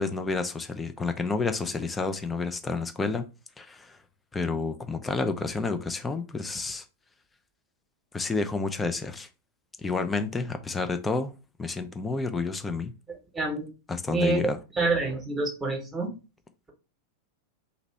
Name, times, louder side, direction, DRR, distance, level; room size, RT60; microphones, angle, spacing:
voice 1, 0.0-3.3 3.6-4.0 4.3-6.8 8.1-9.3 9.8-11.3 11.6-12.9 13.9-14.6, left 4 dB, 15° left, 0.5 m, -30 dB
voice 2, 13.3-13.7 14.1-14.4 14.8-16.1, right 3 dB, 15° right, 1.1 m, -27 dB
2.9 x 2.6 x 4.2 m
figure-of-eight pair, 90°, 0 cm